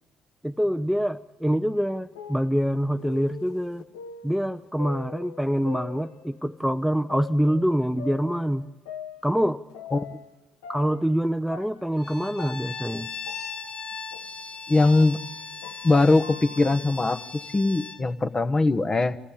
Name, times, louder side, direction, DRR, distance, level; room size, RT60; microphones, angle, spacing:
voice 1, 0.4-3.8 4.2-8.7 9.2-9.6 10.7-13.1, equal, ahead, 9 dB, 0.7 m, -25 dB
sound 1, 1.8-6.6 7.1-10.4 10.6-16.7, left 7 dB, 85° left, 1.0 m, -43 dB
Bowed string instrument, 12.0-18.0, left 4 dB, 50° left, 2.9 m, -38 dB
voice 2, 14.7-15.2 15.8-17.2 17.5-19.2, left 2 dB, 30° left, 10 dB, 1.3 m, -21 dB
28.0 x 15.0 x 8.7 m, 1.2 s
hypercardioid pair, 50°, 2 cm